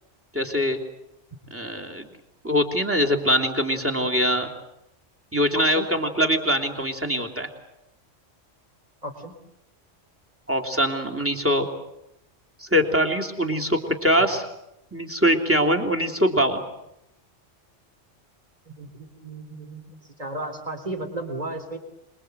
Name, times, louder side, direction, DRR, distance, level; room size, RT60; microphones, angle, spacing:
voice 1, 0.3-0.8 1.5-2.1 2.4-4.5 5.3-7.5 10.5-11.7 12.6-14.4 14.9-16.6, equal, 10° right, 4 dB, 3.2 m, -23 dB
voice 2, 5.5-5.9 9.0-9.3 18.8-19.8 20.2-21.8, right 1 dB, 30° right, 6 dB, 3.9 m, -34 dB
27.0 x 22.5 x 8.2 m, 0.85 s
omnidirectional pair, 1.3 m